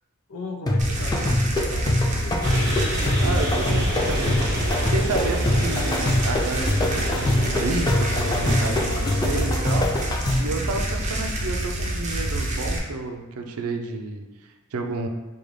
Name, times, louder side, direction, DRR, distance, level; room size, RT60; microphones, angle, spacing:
voice 1, 0.3-2.5, left 2 dB, 75° left, 2 dB, 0.5 m, -37 dB
sound 1, 0.7-10.6, left 1 dB, 20° left, 0.3 m, -24 dB
sound 2, 0.8-12.8, right 1 dB, 35° right, 0.6 m, -27 dB
sound 3, 2.4-8.6, equal, 15° right, 1.0 m, -29 dB
voice 2, 3.2-15.1, right 3 dB, 80° right, 4 dB, 0.5 m, -31 dB
5.1 x 2.3 x 3.2 m, 1.2 s
head